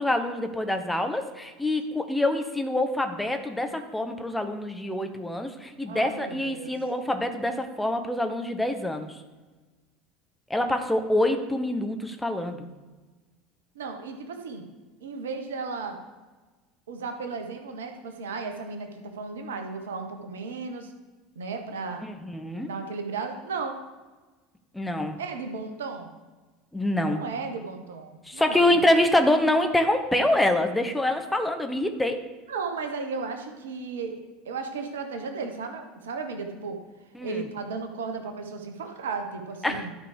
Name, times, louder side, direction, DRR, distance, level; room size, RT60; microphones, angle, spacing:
voice 1, 0.0-9.2 10.5-12.7 22.0-22.7 24.7-25.2 26.7-27.2 28.3-32.2 37.1-37.3 39.6-39.9, left 1 dB, 5° left, 6 dB, 1.1 m, -25 dB
voice 2, 5.9-6.7 13.7-14.6 15.0-16.0 16.9-20.9 21.3-22.0 22.6-23.8 25.2-26.1 27.1-28.8 32.5-36.8 37.2-39.9, right 4 dB, 70° right, 5 dB, 1.2 m, -35 dB
12.5 x 4.9 x 5.1 m, 1.3 s
figure-of-eight pair, 70°, 0 cm